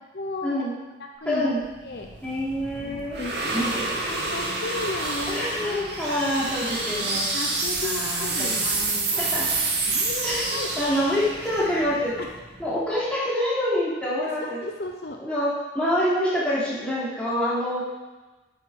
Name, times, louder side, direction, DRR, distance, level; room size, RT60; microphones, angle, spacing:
voice 1, 0.1-0.6 1.2-1.6 1.8-2.1 2.7-3.5 4.0-6.0 6.3-6.5 7.1-9.2 9.9-11.0 12.2-12.3 14.6-15.2, left 2 dB, 60° left, 2 dB, 0.8 m, -35 dB
voice 2, 1.3-1.6 2.2-3.7 5.3-7.2 7.8-8.6 9.2-9.5 10.2-10.4 10.8-12.1 12.6-14.6 15.2-17.8, left 1 dB, 5° left, -9 dB, 3.3 m, -26 dB
sound 1, 1.6-12.9, right 3 dB, 65° right, 1.9 m, -28 dB
9.6 x 7.4 x 5.1 m, 1.2 s
head